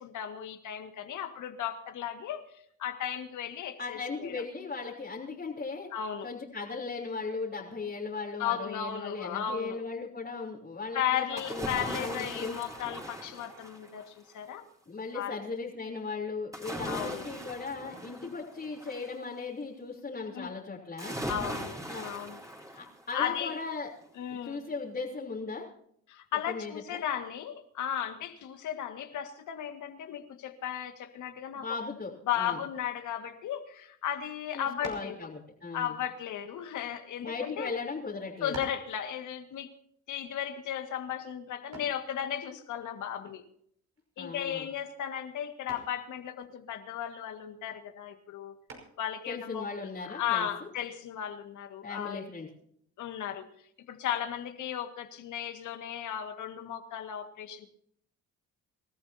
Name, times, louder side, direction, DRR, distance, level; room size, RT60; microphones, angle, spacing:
voice 1, 0.0-4.4 5.9-6.3 8.4-9.8 10.9-14.7 15.1-15.4 16.9-17.3 20.3-20.5 21.3-22.4 22.8-23.6 24.2-24.6 26.1-31.7 32.3-35.3 35.7-37.7 38.4-39.7 40.1-43.4 44.2-48.5 49.0-49.7 50.1-52.3 53.0-53.5 53.9-57.7, left 10 dB, 80° left, 6 dB, 1.9 m, -35 dB
voice 2, 3.8-5.9 6.2-12.5 14.9-21.2 21.9-22.0 22.7-23.9 24.3-25.7 26.5-27.0 31.5-32.6 34.5-36.0 37.2-38.6 44.2-44.7 49.3-50.5 51.8-52.5, left 4 dB, 30° left, -5 dB, 3.5 m, -37 dB
sound 1, 11.4-14.2 16.5-19.1 21.0-23.3 23.7-23.8, right 1 dB, 10° right, 4.3 m, -40 dB
sound 2, 34.8-35.2 36.1-37.3 38.0-38.1 38.5-38.9 41.7-42.1 44.0-44.3 44.7-45.1 45.7-46.0 48.7-49.1, right 3 dB, 55° right, 5.5 m, -45 dB
27.0 x 13.5 x 2.8 m, 0.66 s
cardioid pair, 90°, 30 cm